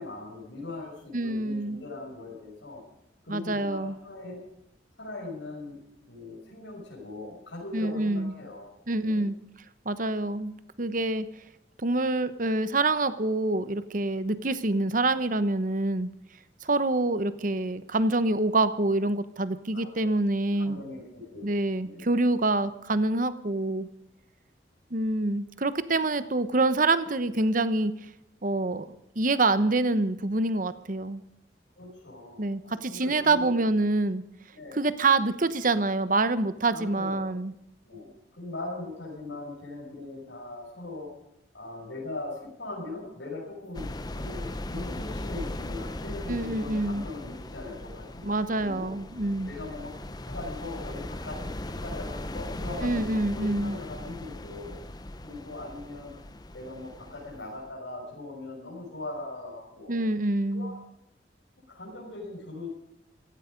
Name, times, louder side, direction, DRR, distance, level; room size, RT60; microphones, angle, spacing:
voice 1, 0.0-2.8 3.2-4.4 5.0-5.8 6.1-8.7 9.0-9.3 19.7-20.1 20.6-21.5 21.8-22.1 31.8-33.5 34.5-34.9 36.7-37.3 37.8-41.1 41.5-48.2 48.6-48.9 49.5-49.9 50.3-54.8 55.2-56.1 56.5-60.0 60.5-60.8 61.7-62.7, left 2 dB, 85° left, -4 dB, 6.1 m, -40 dB
voice 2, 1.1-1.8 3.3-4.0 7.7-8.3 8.9-9.4 9.8-11.3 11.8-16.1 16.6-20.8 21.4-23.9 24.9-27.9 28.4-31.2 32.4-34.2 34.7-37.5 46.3-47.0 48.2-49.5 52.8-53.8 59.9-60.8, right 2 dB, 45° right, 13 dB, 1.0 m, -26 dB
sound 1, 43.7-57.7, left 1 dB, 20° left, 0.8 m, -38 dB
16.5 x 15.5 x 5.2 m, 0.85 s
head